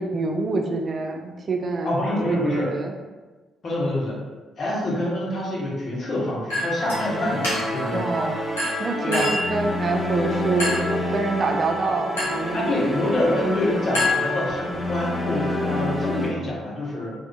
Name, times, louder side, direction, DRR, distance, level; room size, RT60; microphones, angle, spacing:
voice 1, 0.0-2.0 2.3-2.9 7.9-8.4 8.8-12.6, right 3 dB, 45° right, 3 dB, 0.4 m, -26 dB
voice 2, 1.8-2.7 3.6-4.2 4.6-8.1 9.0-9.3 12.5-17.1, left 1 dB, 50° left, -5 dB, 1.3 m, -26 dB
Chink clink, 6.5-7.0 7.4-7.9 8.6-9.5 10.6-11.0 12.2-12.5 13.9-14.7, left 2 dB, 90° left, 1.1 m, -26 dB
sound 1, 6.8-16.3, left 1 dB, 20° left, 1.0 m, -28 dB
3.6 x 3.4 x 2.4 m, 1.3 s
hypercardioid pair, 45°, 0 cm